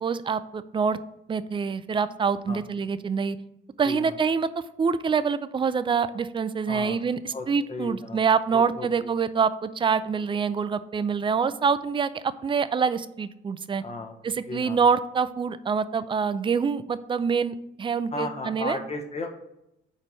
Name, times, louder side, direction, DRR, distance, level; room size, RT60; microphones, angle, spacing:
voice 1, 0.0-1.0 1.3-3.4 3.8-4.5 4.8-13.8 14.2-18.8, right 6 dB, 25° right, 14 dB, 0.4 m, -26 dB
voice 2, 6.7-7.0 7.3-8.2 8.5-9.1 13.8-14.1 14.5-14.8 18.1-19.3, left 3 dB, 35° left, 3 dB, 1.0 m, -35 dB
4.6 x 4.3 x 5.3 m, 0.85 s
cardioid pair, 90°, 20 cm